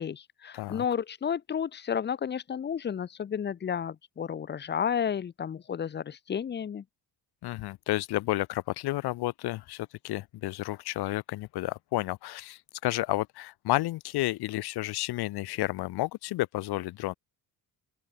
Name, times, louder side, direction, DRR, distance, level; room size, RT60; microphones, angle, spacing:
voice 1, 0.0-6.8, left 8 dB, 30° left, 0.7 m, -32 dB
voice 2, 0.5-0.8 7.4-17.1, left 18 dB, 80° left, 0.8 m, -31 dB
cardioid pair, 160°, 38 cm